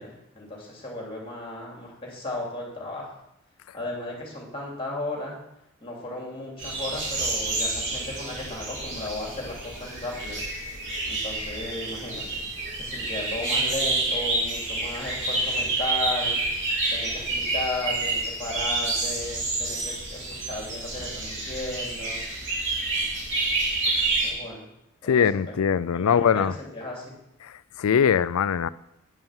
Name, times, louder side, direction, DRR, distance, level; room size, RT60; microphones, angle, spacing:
voice 1, 0.0-3.1 3.7-5.4 5.8-10.4 11.1-12.4 12.7-16.4 16.9-22.2 24.0-24.7 25.0-25.2 26.0-26.3 26.6-27.1, left 2 dB, 25° left, -2 dB, 2.8 m, -35 dB
sound 1, 6.6-24.3, right 2 dB, 55° right, 3.1 m, -28 dB
voice 2, 25.0-26.5 27.4-28.7, left 7 dB, 80° left, 17 dB, 0.4 m, -22 dB
9.2 x 5.6 x 7.2 m, 0.84 s
head